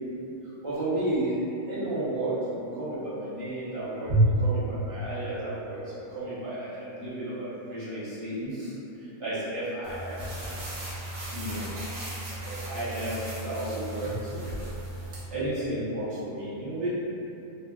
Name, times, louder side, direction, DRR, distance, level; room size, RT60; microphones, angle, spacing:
voice 1, 0.6-10.2 11.3-11.7 12.4-14.6 15.3-16.9, right 1 dB, 25° right, -13 dB, 0.8 m, -31 dB
sound 1, 9.8-15.2, right 1 dB, 60° right, 1.1 m, -37 dB
3.3 x 2.5 x 2.4 m, 2.9 s
omnidirectional pair, 1.8 m